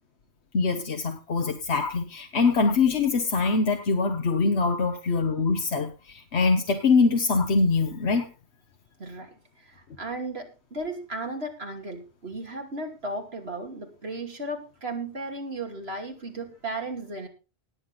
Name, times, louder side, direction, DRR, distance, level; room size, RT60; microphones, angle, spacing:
voice 1, 0.5-8.3, left 4 dB, 90° left, 1.4 m, -23 dB
voice 2, 9.0-17.3, right 2 dB, 70° right, 2.9 m, -35 dB
19.5 x 8.0 x 3.8 m
omnidirectional pair, 1.1 m